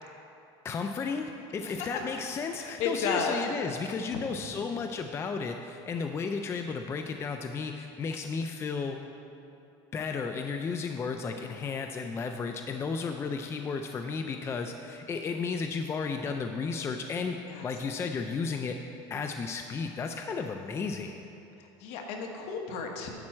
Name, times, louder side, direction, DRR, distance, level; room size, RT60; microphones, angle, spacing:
voice 1, 0.6-9.0 9.9-17.4 17.6-18.8 19.1-21.2, left 5 dB, 25° left, 5 dB, 0.4 m, -33 dB
voice 2, 2.6-3.4 4.1-4.2 17.4-17.7 21.8-23.1, left 5 dB, 65° left, 2 dB, 1.3 m, -32 dB
10.5 x 4.3 x 7.5 m, 2.8 s
cardioid pair, 135°, 11 cm